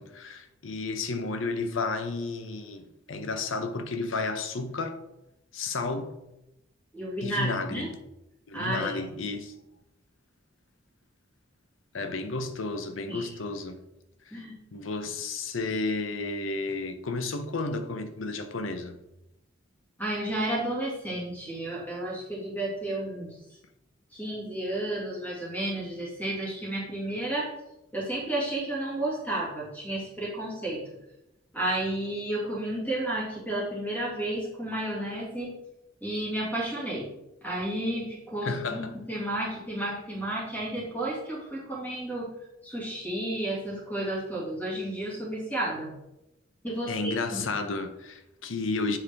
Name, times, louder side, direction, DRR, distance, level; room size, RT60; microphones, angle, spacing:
voice 1, 0.0-5.0 5.5-6.1 7.2-7.9 8.5-9.5 11.9-13.8 14.3-14.4 14.7-19.0 38.4-39.0 46.9-49.0, left 3 dB, 75° left, 0.7 m, -32 dB
voice 2, 6.9-7.9 8.5-9.0 13.1-13.3 14.3-14.5 20.0-23.3 24.1-27.5 27.9-30.8 31.5-35.5 36.0-37.1 37.4-42.3 42.6-45.9 46.6-47.2 47.5-47.6, right 1 dB, 10° left, 2.3 m, -32 dB
7.4 x 4.9 x 3.5 m
head